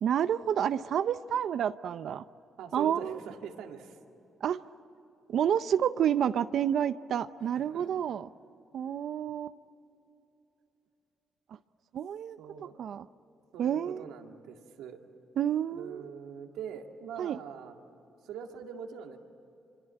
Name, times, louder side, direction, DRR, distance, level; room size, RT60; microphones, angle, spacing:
voice 1, 0.0-2.2 2.7-3.2 4.4-4.6 5.3-8.3 8.7-9.5 11.9-12.4 12.8-13.1 13.6-14.0 15.4-16.1 17.2-17.4, right 9 dB, 65° right, 13 dB, 0.6 m, -29 dB
voice 2, 2.6-4.0 7.6-7.9 12.4-12.8 13.5-15.0 15.7-17.8 18.2-19.2, right 7 dB, 85° right, 4 dB, 2.1 m, -43 dB
25.5 x 25.0 x 9.0 m, 2.9 s
cardioid pair, 90°, 0 cm